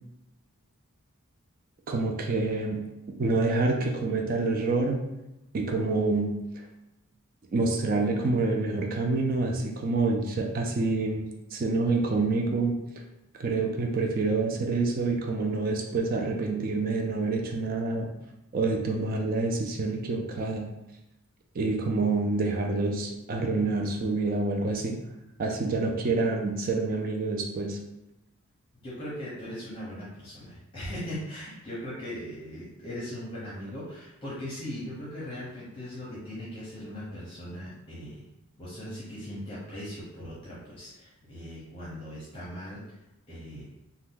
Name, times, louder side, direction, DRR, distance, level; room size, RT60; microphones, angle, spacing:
voice 1, 1.9-2.9 3.2-5.0 5.5-6.3 7.5-12.7 13.4-18.1 18.5-20.7 21.6-25.0 25.4-27.8, right 3 dB, 40° right, 1 dB, 0.3 m, -27 dB
voice 2, 28.8-38.2 38.6-42.8 43.3-43.7, equal, 25° left, -8 dB, 0.7 m, -39 dB
2.5 x 2.2 x 3.7 m, 0.93 s
head